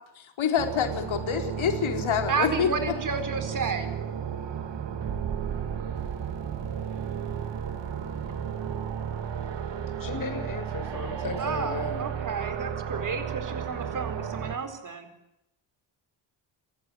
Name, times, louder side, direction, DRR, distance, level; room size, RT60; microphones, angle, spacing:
voice 1, 0.4-2.7, left 7 dB, 70° left, 5 dB, 4.2 m, -26 dB
sound 1, 0.6-14.6, right 8 dB, 60° right, 2.3 m, -33 dB
voice 2, 2.3-3.9 11.4-15.1, right 5 dB, 40° right, 8 dB, 4.5 m, -31 dB
voice 3, 10.0-12.1, left 5 dB, 40° left, 6 dB, 6.4 m, -36 dB
29.5 x 15.5 x 9.8 m, 0.88 s
wide cardioid pair, 140°, 48 cm